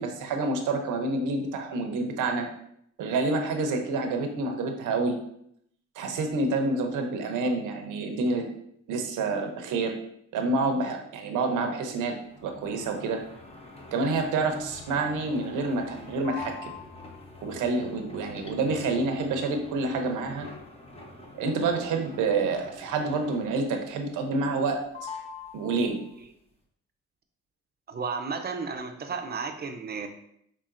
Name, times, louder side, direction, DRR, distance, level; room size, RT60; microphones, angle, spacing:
voice 1, 0.0-2.5 3.0-5.2 6.0-8.5 8.9-9.9 10.3-12.1 12.4-13.2 13.9-16.7 17.4-20.5 21.3-25.1 25.5-26.0, right 3 dB, 85° right, 4 dB, 0.8 m, -28 dB
sound 1, 12.3-23.8 24.1-24.7 24.9-26.2, left 3 dB, 20° left, 0.9 m, -45 dB
voice 2, 27.9-30.1, right 5 dB, 30° right, 5 dB, 0.7 m, -33 dB
5.7 x 3.5 x 2.6 m, 0.71 s
cardioid pair, 90°, 30 cm